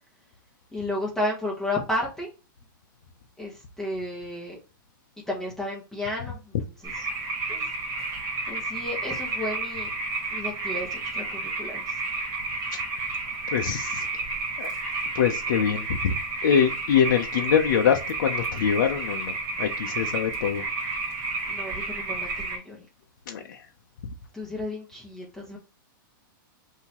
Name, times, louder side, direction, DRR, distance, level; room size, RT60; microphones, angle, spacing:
voice 1, 0.7-2.3 3.4-4.6 5.3-7.1 7.5-7.6 8.5-9.9 10.3-11.2 11.6-12.0 21.5-22.9 24.3-25.6, left 1 dB, 5° left, 1.2 m, -32 dB
sound 1, 6.8-22.6, right 3 dB, 25° right, 1.7 m, -31 dB
voice 2, 13.5-14.0 14.6-14.7 15.1-16.1 16.4-20.6 23.3-23.6, left 8 dB, 60° left, 0.6 m, -24 dB
5.4 x 2.8 x 3.0 m
supercardioid pair, 165°, 11 cm